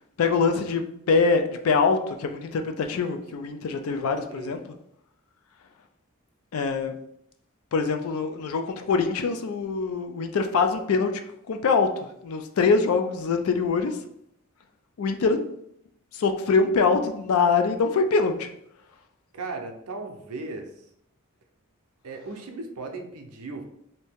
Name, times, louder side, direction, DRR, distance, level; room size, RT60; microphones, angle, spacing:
voice 1, 0.2-0.8 1.1-4.6 6.5-6.9 7.7-11.2 11.5-14.0 15.0-15.4 16.1-18.5, left 4 dB, 70° left, 6 dB, 0.4 m, -24 dB
voice 2, 19.3-20.9 22.0-23.6, right 3 dB, 85° right, 3 dB, 0.6 m, -36 dB
2.8 x 2.6 x 3.4 m, 0.73 s
head